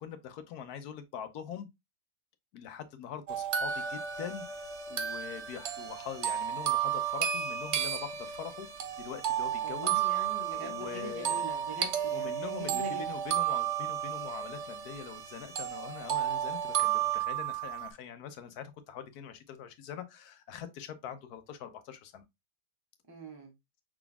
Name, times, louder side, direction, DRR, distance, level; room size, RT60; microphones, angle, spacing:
voice 1, 0.0-1.7 2.5-8.7 9.0-11.5 12.1-22.2, left 8 dB, 70° left, 1.2 m, -43 dB
sound 1, 3.3-15.3 15.6-17.9, right 11 dB, 60° right, 0.7 m, -33 dB
sound 2, 3.7-17.2, equal, 75° right, 1.6 m, -45 dB
voice 2, 9.6-13.0 23.1-23.5, right 1 dB, 15° right, 1.3 m, -43 dB
5.9 x 3.8 x 2.3 m
omnidirectional pair, 1.8 m